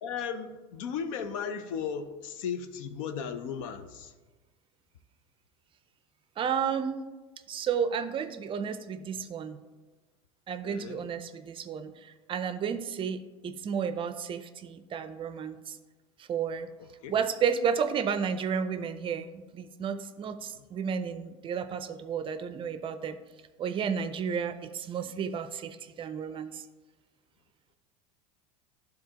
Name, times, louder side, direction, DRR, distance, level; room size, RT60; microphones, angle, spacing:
voice 1, 0.0-4.1 10.6-11.0 17.0-17.1 20.6-20.7, left 7 dB, 75° left, 9 dB, 0.6 m, -36 dB
voice 2, 6.4-7.0 7.5-9.6 10.5-15.8 16.2-16.7 17.1-23.2 23.6-26.6, right 7 dB, 30° right, 11 dB, 0.4 m, -32 dB
11.0 x 3.8 x 2.8 m, 1.3 s
supercardioid pair, 105°, 17 cm